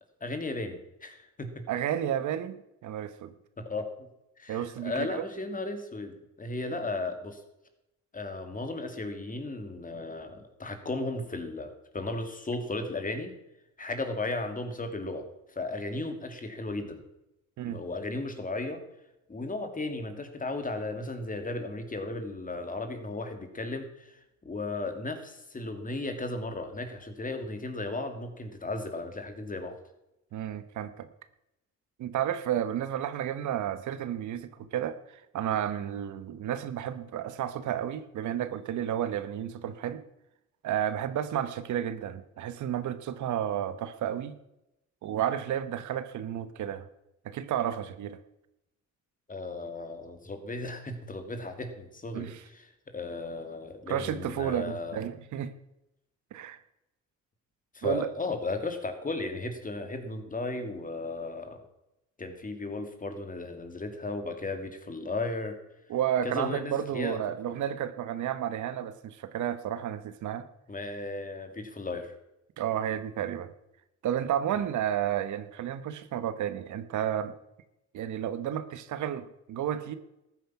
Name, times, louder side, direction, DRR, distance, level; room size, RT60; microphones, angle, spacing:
voice 1, 0.2-1.7 3.6-4.1 4.4-7.4 8.1-13.4 13.8-17.0 17.6-18.8 19.3-29.8 49.3-52.7 52.9-55.0 57.7-61.6 62.2-65.6 66.2-67.2 70.7-72.1, left 2 dB, 25° left, 7 dB, 2.5 m, -35 dB
voice 2, 1.7-3.3 4.5-5.3 17.6-17.8 30.3-31.1 32.0-40.0 40.6-44.4 45.0-46.9 47.2-48.2 52.1-52.4 53.9-55.5 56.3-56.6 57.8-58.1 65.9-70.5 72.6-73.5 74.0-77.3 77.9-79.9, right 10 dB, 75° right, 13 dB, 1.1 m, -32 dB
14.0 x 9.3 x 5.9 m, 0.88 s
cardioid pair, 90°, 30 cm